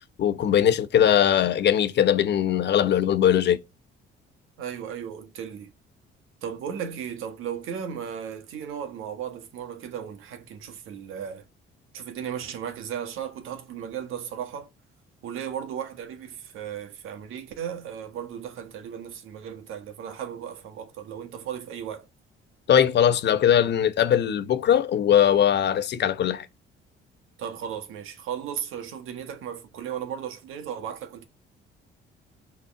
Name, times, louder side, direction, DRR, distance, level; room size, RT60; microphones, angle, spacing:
voice 1, 0.2-3.6 22.7-26.5, left 9 dB, 55° left, 0.9 m, -20 dB
voice 2, 4.6-5.7 6.4-11.4 11.9-14.7 15.2-22.1 27.4-31.3, right 8 dB, 80° right, 1.5 m, -35 dB
6.4 x 4.0 x 5.8 m
cardioid pair, 100°, 21 cm